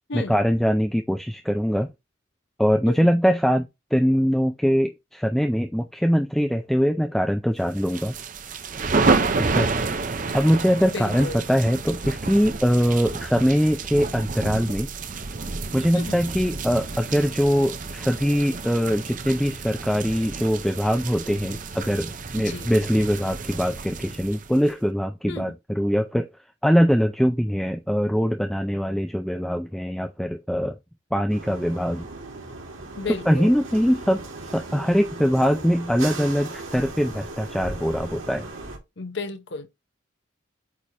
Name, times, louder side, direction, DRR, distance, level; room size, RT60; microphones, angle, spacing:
voice 1, 0.1-1.9 2.6-3.7 3.9-8.2 9.5-9.7 10.3-14.9 15.7-26.3 26.6-30.8 31.1-32.1 33.3-34.2 34.5-38.5, equal, ahead, 0.4 m, -22 dB
sound 1, 7.8-24.7, right 3 dB, 40° right, 0.6 m, -29 dB
voice 2, 10.9-11.6 15.9-16.2 22.3-22.7 25.3-25.5 33.0-33.6 39.0-39.7, left 3 dB, 60° left, 0.9 m, -34 dB
sound 2, 31.3-38.8, right 2 dB, 85° right, 2.5 m, -37 dB
8.3 x 2.9 x 4.8 m
head